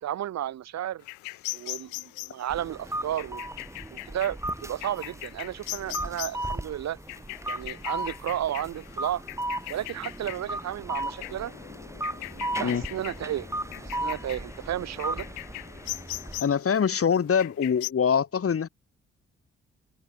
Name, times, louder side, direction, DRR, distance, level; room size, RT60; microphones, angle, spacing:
voice 1, 0.0-1.0 1.5-3.4 3.9-7.0 7.5-9.2 9.7-11.5 12.3-13.5 13.8-15.3, right 11 dB, 60° right, 1.5 m, -33 dB
sound 1, 1.0-17.9, left 33 dB, 75° left, 1.6 m, -41 dB
sound 2, 2.5-16.4, right 1 dB, 10° right, 4.7 m, -36 dB
voice 2, 16.4-18.7, left 7 dB, 45° left, 3.6 m, -24 dB
open air
hypercardioid pair, 40°, 31 cm